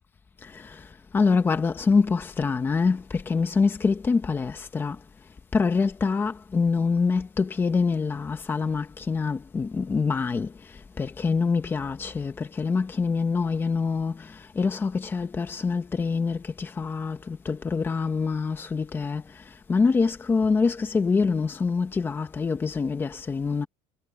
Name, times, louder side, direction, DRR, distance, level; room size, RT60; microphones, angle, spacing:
voice 1, 1.1-5.0 5.5-10.5 11.0-14.2 14.6-19.2 19.7-23.7, left 4 dB, 15° left, 1.2 m, -25 dB
cardioid pair, 160°, 14 cm